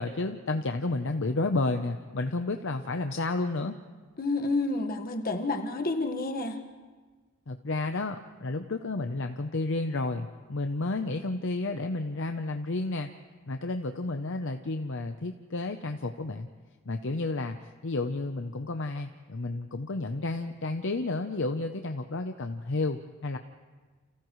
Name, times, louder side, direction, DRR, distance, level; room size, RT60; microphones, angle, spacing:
voice 1, 0.0-3.8 7.5-13.1 13.5-16.5 16.9-17.6 17.8-23.4, left 2 dB, 55° left, 6 dB, 0.7 m, -31 dB
voice 2, 4.2-6.6, left 2 dB, 40° left, 4 dB, 1.5 m, -29 dB
30.0 x 28.5 x 3.2 m, 1.4 s
head